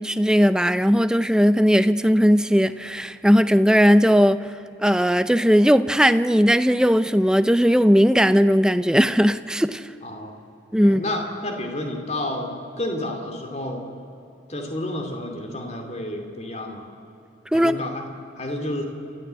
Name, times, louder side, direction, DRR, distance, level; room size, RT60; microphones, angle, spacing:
voice 1, 0.0-4.5 4.8-9.9 10.7-11.0 17.5-17.8, equal, 5° right, 12 dB, 0.5 m, -18 dB
voice 2, 10.0-10.3 10.8-13.9 14.5-16.9 17.5-18.1 18.4-18.8, left 1 dB, 35° left, 3 dB, 2.7 m, -30 dB
30.0 x 13.5 x 8.2 m, 2.8 s
head